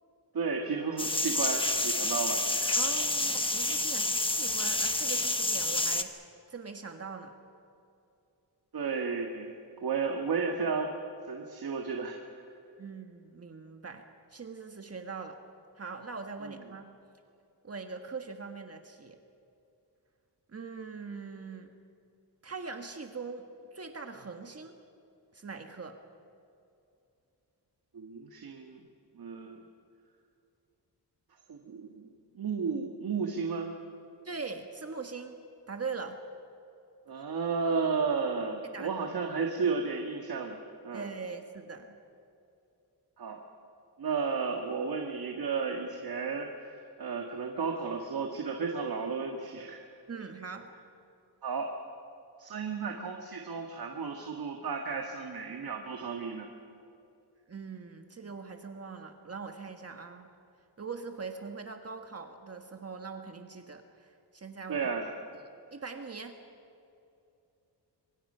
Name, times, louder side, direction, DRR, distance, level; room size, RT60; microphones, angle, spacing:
voice 1, 0.3-2.8 8.7-10.9 11.3-12.4 16.4-16.6 27.9-28.8 29.2-29.6 31.5-33.7 37.1-41.1 43.2-43.4 44.0-49.8 51.4-51.7 52.4-56.5 64.7-65.1, right 5 dB, 60° right, 2 dB, 2.0 m, -33 dB
sound 1, 1.0-6.0, left 2 dB, 15° left, 1.2 m, -29 dB
voice 2, 2.7-7.4 12.8-15.4 15.8-16.9 17.6-19.2 20.5-21.7 22.4-23.4 23.7-24.8 25.3-26.0 34.2-35.4 35.7-36.2 38.7-39.1 40.9-41.9 50.1-50.7 57.5-60.3 60.8-64.8 65.7-66.4, right 4 dB, 35° right, 5 dB, 1.5 m, -42 dB
26.0 x 25.0 x 5.7 m, 2.7 s
wide cardioid pair, 135°, 40 cm